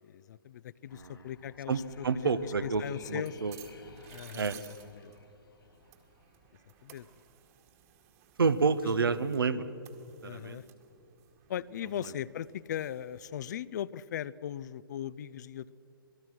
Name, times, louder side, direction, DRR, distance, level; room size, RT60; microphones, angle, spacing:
voice 1, 0.0-3.4 4.1-5.1 6.8-7.1 10.2-10.7 11.5-15.7, left 10 dB, 50° left, 19 dB, 0.6 m, -39 dB
sound 1, 0.9-6.8, left 4 dB, 75° left, 2.0 m, -56 dB
voice 2, 1.7-2.8 3.1-3.6 4.3-4.6 8.4-9.7 10.2-10.6, right 4 dB, 75° right, 13 dB, 1.1 m, -29 dB
sound 2, 2.0-13.6, right 12 dB, 40° right, 2.1 m, -58 dB
27.0 x 19.0 x 6.2 m, 2.9 s
figure-of-eight pair, 120°, 12 cm